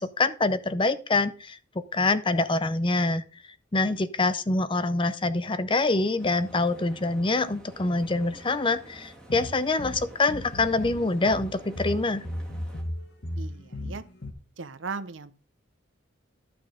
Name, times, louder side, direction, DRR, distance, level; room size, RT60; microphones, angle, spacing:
voice 1, 0.0-1.6 1.9-3.2 3.7-12.2, left 3 dB, 25° left, 0.6 m, -25 dB
sound 1, 6.2-12.8, right 1 dB, 5° left, 2.1 m, -49 dB
sound 2, 9.3-11.0 11.3-14.3, left 1 dB, 55° left, 1.7 m, -35 dB
voice 2, 13.4-14.0 14.6-15.3, right 4 dB, 75° right, 0.8 m, -37 dB
12.0 x 6.1 x 4.9 m
head